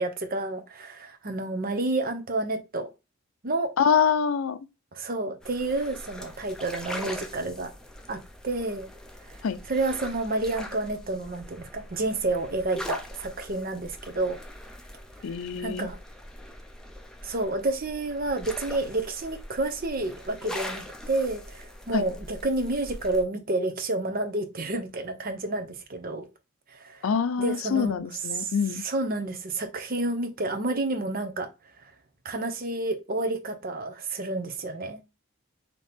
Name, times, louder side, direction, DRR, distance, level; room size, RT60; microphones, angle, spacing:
voice 1, 0.0-2.9 3.4-3.7 4.9-7.7 8.1-8.9 9.2-9.4 9.7-14.4 15.3-16.0 17.2-26.3 26.7-27.0 27.4-27.9 28.4-31.5 32.2-35.0, right 2 dB, 45° right, 0.7 m, -30 dB
voice 2, 3.8-4.6 9.4-9.6 15.2-15.9 21.9-22.0 27.0-28.8, left 6 dB, 85° left, 0.4 m, -25 dB
sound 1, 5.4-23.2, equal, 5° left, 0.5 m, -41 dB
4.1 x 2.9 x 3.4 m
head